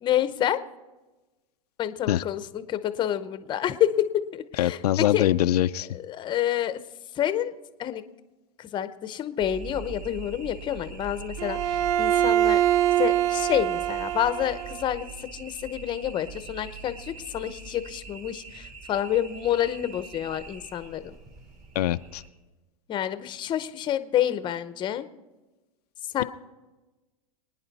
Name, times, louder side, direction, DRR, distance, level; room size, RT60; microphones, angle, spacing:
voice 1, 0.0-0.6 1.8-5.3 6.1-6.8 7.1-7.5 7.8-8.0 8.6-12.6 13.0-21.1 22.9-25.0 26.1-26.2, left 11 dB, 25° left, 12 dB, 0.8 m, -28 dB
voice 2, 4.6-5.9 21.7-22.2, left 13 dB, 85° left, 10 dB, 0.5 m, -23 dB
sound 1, 9.4-22.3, right 5 dB, 35° right, 2.6 m, -42 dB
Bowed string instrument, 11.4-14.8, right 12 dB, 65° right, 0.5 m, -24 dB
24.5 x 9.8 x 4.1 m, 1.2 s
supercardioid pair, 135°, 19 cm